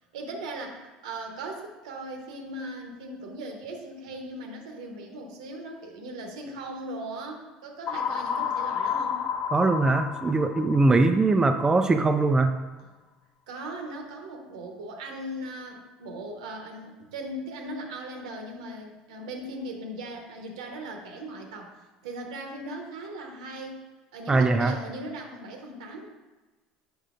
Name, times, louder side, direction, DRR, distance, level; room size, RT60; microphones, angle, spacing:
voice 1, 0.1-9.3 13.5-21.8 22.0-23.8 24.1-26.1, right 1 dB, 85° right, 2 dB, 1.0 m, -38 dB
sound 1, 7.9-11.7, left 7 dB, 45° left, 0.4 m, -31 dB
voice 2, 9.5-12.6 24.3-24.7, right 3 dB, 20° right, 6 dB, 0.4 m, -21 dB
7.4 x 5.4 x 2.5 m, 1.2 s
hypercardioid pair, 80°, 3 cm